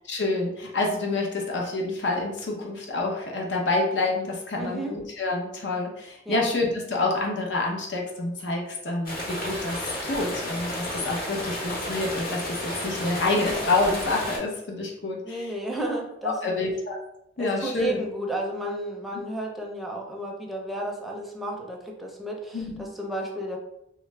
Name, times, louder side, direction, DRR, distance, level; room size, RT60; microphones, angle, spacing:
voice 1, 0.1-15.5 16.2-17.0 17.4-18.0 22.5-22.8, left 2 dB, 85° left, -1 dB, 0.8 m, -28 dB
voice 2, 4.6-4.9 6.3-6.4 15.2-16.8 17.4-23.6, right 1 dB, ahead, -1 dB, 0.5 m, -33 dB
sound 1, 9.0-14.4, left 1 dB, 55° left, 1.1 m, -32 dB
3.1 x 2.4 x 3.2 m, 0.81 s
head